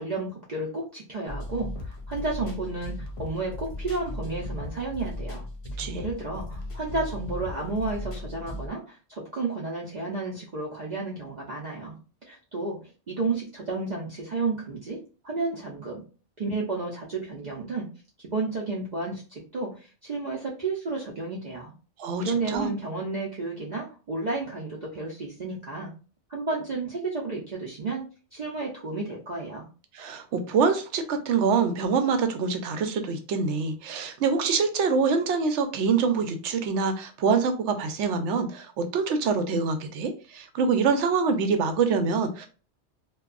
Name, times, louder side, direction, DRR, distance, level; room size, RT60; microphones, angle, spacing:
voice 1, 0.0-5.5 5.9-12.0 12.3-12.8 13.1-15.0 15.2-16.0 16.4-17.9 18.2-21.7 22.2-25.9 26.3-28.0 28.3-29.7, right 3 dB, 50° right, -4 dB, 0.6 m, -32 dB
sound 1, 1.3-8.7, left 1 dB, 45° left, 0.4 m, -36 dB
voice 2, 22.0-22.7 29.9-42.5, right 5 dB, 80° right, 8 dB, 0.9 m, -25 dB
2.7 x 2.2 x 2.4 m, 0.35 s
omnidirectional pair, 1.2 m